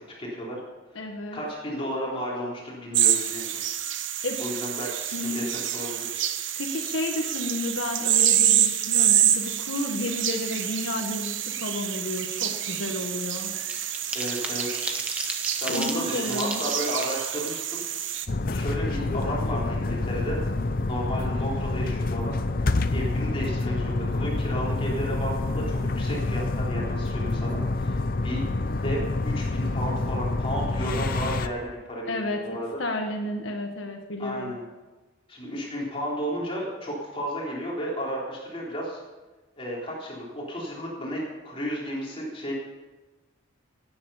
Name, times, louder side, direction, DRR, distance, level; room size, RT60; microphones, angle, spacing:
voice 1, 0.2-0.6 1.3-3.6 4.1-6.2 14.1-14.9 15.6-17.8 18.5-20.4 20.9-22.4 22.9-28.4 28.8-32.8 34.2-34.6 35.3-39.0 39.6-42.5, equal, 25° left, -4 dB, 3.6 m, -33 dB
voice 2, 0.9-1.4 4.2-4.4 5.1-5.5 6.5-13.5 15.7-16.6 32.1-34.5, left 2 dB, 75° left, 3 dB, 1.4 m, -31 dB
sound 1, 2.9-18.3, right 11 dB, 65° right, 0.9 m, -27 dB
sound 2, 11.7-11.9 12.2-18.6 19.0-19.1 19.4-20.4 20.7-20.9 21.2-21.5, right 1 dB, 5° right, 1.2 m, -36 dB
sound 3, 18.3-31.5, left 2 dB, 45° left, 0.7 m, -27 dB
17.0 x 9.5 x 5.6 m, 1.2 s
head